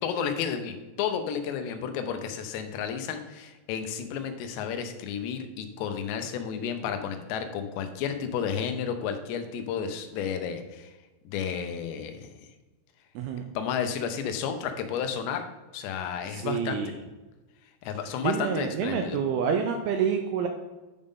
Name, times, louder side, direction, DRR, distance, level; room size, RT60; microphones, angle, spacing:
voice 1, 0.0-10.9 11.3-12.3 13.6-15.4 15.7-16.8 17.8-19.2, left 7 dB, 80° left, 7 dB, 2.9 m, -32 dB
voice 2, 13.2-13.5 16.3-16.9 18.2-20.5, right 7 dB, 85° right, 5 dB, 2.3 m, -28 dB
10.0 x 5.3 x 3.6 m, 1.2 s
omnidirectional pair, 5.0 m